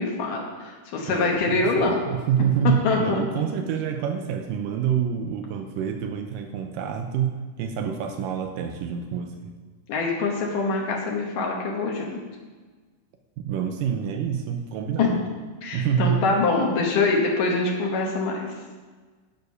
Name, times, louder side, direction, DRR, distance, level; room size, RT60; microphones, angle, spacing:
voice 1, 0.0-2.0 2.8-3.2 9.9-12.2 15.0-15.1 15.6-18.5, left 3 dB, 75° left, -1 dB, 2.7 m, -24 dB
voice 2, 1.0-9.5 13.4-15.3 15.7-16.2, right 8 dB, 85° right, 5 dB, 2.3 m, -27 dB
Drum, 2.7-5.3, left 5 dB, 45° left, 1.9 m, -37 dB
12.0 x 6.6 x 5.5 m, 1.4 s
omnidirectional pair, 3.9 m